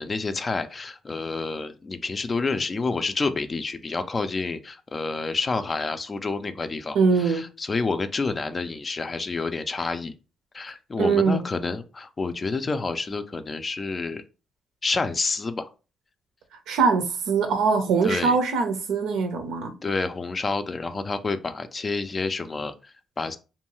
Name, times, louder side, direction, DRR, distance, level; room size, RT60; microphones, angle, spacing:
voice 1, 0.0-10.1 10.5-14.2 14.8-15.7 18.0-18.4 19.8-23.4, left 3 dB, 30° left, 0.3 m, -29 dB
voice 2, 6.9-7.4 11.0-11.4 16.7-19.7, right 5 dB, 85° right, 0.6 m, -22 dB
2.7 x 2.3 x 3.0 m
cardioid pair, 90°, 0 cm